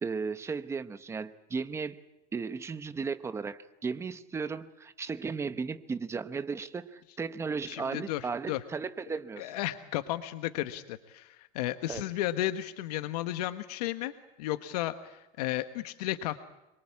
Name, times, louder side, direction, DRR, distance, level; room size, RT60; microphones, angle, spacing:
voice 1, 0.0-2.0 2.3-9.5 11.9-12.0, right 5 dB, 15° right, 12 dB, 0.9 m, -35 dB
voice 2, 7.7-8.6 9.4-14.1 14.4-16.4, left 14 dB, 90° left, 10 dB, 1.3 m, -33 dB
26.0 x 22.5 x 8.5 m, 0.99 s
supercardioid pair, 155°, 20 cm